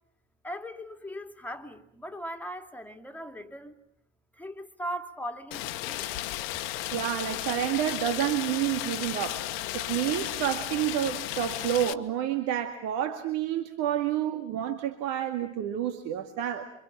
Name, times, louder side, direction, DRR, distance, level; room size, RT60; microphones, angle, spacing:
voice 1, 0.4-3.8 4.3-6.1, equal, 5° left, 2.6 m, -39 dB
Rain, 5.5-11.9, left 15 dB, 55° left, 1.6 m, -34 dB
voice 2, 6.9-9.5 9.7-16.7, right 11 dB, 50° right, 2.2 m, -29 dB
28.0 x 26.0 x 7.5 m
figure-of-eight pair, 80°, 35 cm